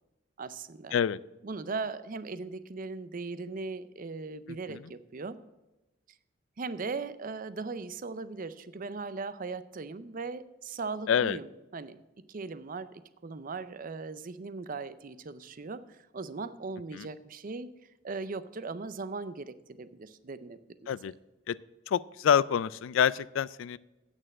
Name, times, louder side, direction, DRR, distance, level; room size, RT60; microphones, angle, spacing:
voice 1, 0.4-0.9 1.4-5.4 6.6-12.0 12.3-17.7 18.0-20.9, right 4 dB, 40° right, 14 dB, 0.5 m, -39 dB
voice 2, 11.1-11.4 16.9-17.1 20.9-21.1 21.5-21.6 21.9-23.8, left 8 dB, 65° left, 20 dB, 0.3 m, -27 dB
8.8 x 6.6 x 7.3 m, 1.0 s
head